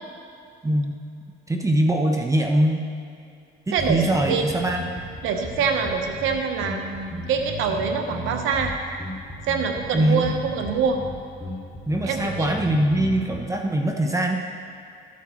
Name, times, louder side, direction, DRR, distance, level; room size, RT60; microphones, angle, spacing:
voice 1, 0.6-1.0 1.5-2.9 3.7-4.8 9.9-10.3 11.9-14.4, right 1 dB, 15° right, 2 dB, 0.8 m, -22 dB
voice 2, 3.7-4.5 5.2-8.7 9.5-11.0 12.0-12.5, right 5 dB, 90° right, 4 dB, 1.0 m, -25 dB
sound 1, 3.8-13.4, left 1 dB, 20° left, 2.4 m, -35 dB
14.5 x 8.4 x 3.1 m, 2.5 s
cardioid pair, 90°, 20 cm